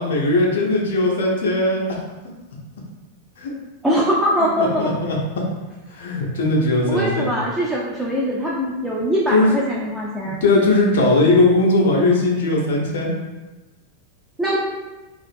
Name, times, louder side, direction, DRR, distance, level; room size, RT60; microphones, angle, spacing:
voice 1, 0.0-1.8 3.4-3.5 4.6-5.2 5.9-7.3 9.3-9.5 10.4-13.1, left 2 dB, 60° left, -2 dB, 0.5 m, -18 dB
voice 2, 3.8-4.9 6.9-10.4 14.4-14.6, equal, 10° right, -5 dB, 0.4 m, -22 dB
2.4 x 2.3 x 2.5 m, 1.1 s
figure-of-eight pair, 90°, 0 cm